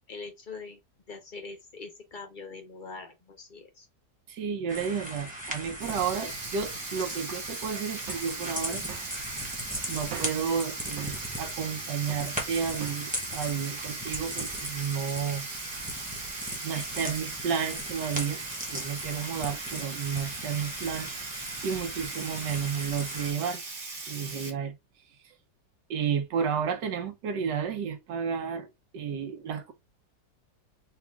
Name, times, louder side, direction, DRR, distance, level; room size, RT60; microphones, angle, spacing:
voice 1, 0.1-0.8 1.1-3.9, left 4 dB, 50° left, 0.6 m, -43 dB
voice 2, 4.3-8.8 9.9-15.5 16.6-18.4 18.7-23.6 24.1-24.7 25.9-29.7, right 7 dB, 90° right, 1.5 m, -32 dB
sound 1, 4.7-23.3, right 1 dB, 5° right, 0.8 m, -38 dB
Sink (filling or washing), 5.8-24.5, right 3 dB, 35° right, 0.9 m, -39 dB
sound 2, 8.1-8.4 8.9-9.2 10.1-10.5 11.0-11.3 12.1-12.4 12.8-13.1, right 8 dB, 65° right, 1.1 m, -42 dB
4.0 x 2.4 x 3.5 m
omnidirectional pair, 1.8 m